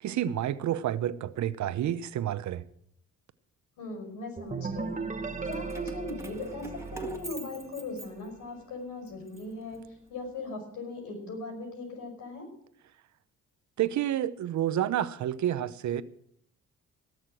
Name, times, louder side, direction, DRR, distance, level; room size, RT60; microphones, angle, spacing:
voice 1, 0.0-2.6 13.8-16.0, right 11 dB, 70° right, 0.8 m, -29 dB
voice 2, 3.8-5.0 5.4-12.5, left 2 dB, 85° left, 5.5 m, -39 dB
sound 1, 4.4-8.1, right 4 dB, 25° right, 1.3 m, -37 dB
Keys jangling, 5.4-8.6 9.1-10.3, right 2 dB, 10° right, 1.8 m, -46 dB
18.0 x 6.6 x 7.7 m
cardioid pair, 90°, 30 cm